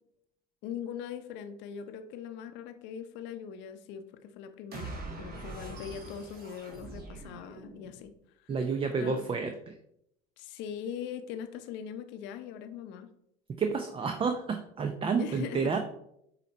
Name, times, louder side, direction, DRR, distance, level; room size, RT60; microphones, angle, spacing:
voice 1, 0.6-8.1 8.4-8.5 9.0-9.2 10.4-13.1 15.2-15.7, left 8 dB, 60° left, 9 dB, 0.7 m, -41 dB
sound 1, 4.7-8.1, right 3 dB, 45° right, 1.9 m, -43 dB
voice 2, 8.5-9.8 13.5-15.8, right 5 dB, 25° right, 6 dB, 0.6 m, -30 dB
7.8 x 3.0 x 4.1 m, 0.75 s
hypercardioid pair, 80°, 21 cm